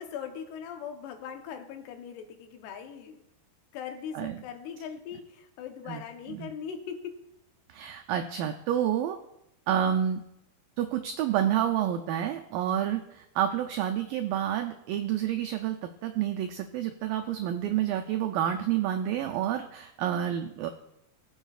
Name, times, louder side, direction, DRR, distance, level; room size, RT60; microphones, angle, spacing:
voice 1, 0.0-3.2 3.7-7.1, left 7 dB, 85° left, 5 dB, 3.1 m, -40 dB
voice 2, 7.7-9.2 9.7-10.2 10.8-15.8 16.0-20.7, right 10 dB, 90° right, 5 dB, 2.0 m, -29 dB
21.0 x 7.1 x 2.4 m, 0.81 s
omnidirectional pair, 4.7 m